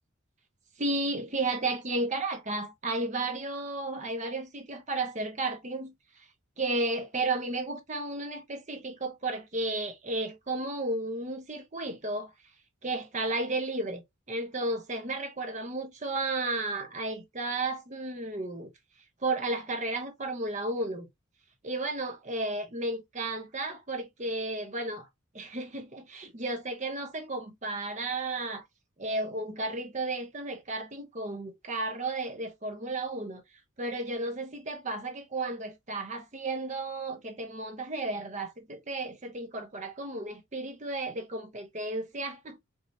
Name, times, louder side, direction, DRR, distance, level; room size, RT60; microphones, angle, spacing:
voice 1, 0.8-5.9 6.6-12.3 12.8-14.0 14.3-18.7 19.2-21.1 21.6-25.1 25.3-28.6 29.0-33.4 33.8-42.6, right 2 dB, 35° right, 0.9 m, -33 dB
4.8 x 3.0 x 2.6 m
head